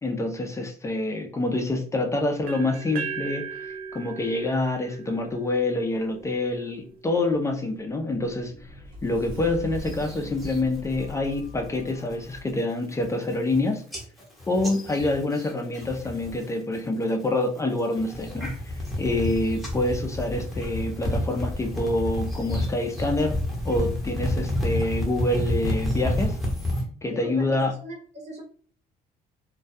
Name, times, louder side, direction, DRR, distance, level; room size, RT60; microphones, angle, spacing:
voice 1, 0.0-8.7 9.0-13.8 14.5-23.4 23.6-26.4 27.0-27.7, left 2 dB, 15° left, 3 dB, 0.4 m, -27 dB
sound 1, 2.5-6.3, right 7 dB, 60° right, 0.4 m, -37 dB
Sliding door, 7.7-12.5, left 1 dB, 80° right, 0.9 m, -41 dB
sound 2, 9.8-10.6 11.0-11.4 11.8-12.1 12.6-12.7 12.9-13.6 13.9-16.5 16.7-17.3 17.8-26.8, left 1 dB, ahead, 0.8 m, -30 dB
voice 2, 27.1-28.4, right 1 dB, 40° right, 0 dB, 0.9 m, -41 dB
2.2 x 2.2 x 2.6 m, 0.43 s
cardioid pair, 110°, 17 cm